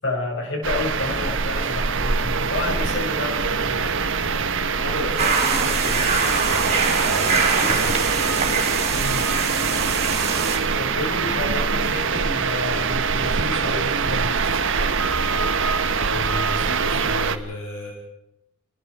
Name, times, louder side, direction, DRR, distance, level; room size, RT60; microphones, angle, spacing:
voice 1, 0.0-4.0 8.9-9.3 10.8-14.3, left 2 dB, 55° left, 1 dB, 6.8 m, -30 dB
sound 1, 0.6-17.4, right 5 dB, 55° right, 1.2 m, -23 dB
voice 2, 4.7-8.0 16.0-17.9, left 1 dB, 85° left, 0 dB, 4.1 m, -34 dB
sound 2, 5.2-10.6, right 5 dB, 30° right, 4.3 m, -23 dB
30.0 x 21.0 x 5.0 m, 0.83 s
head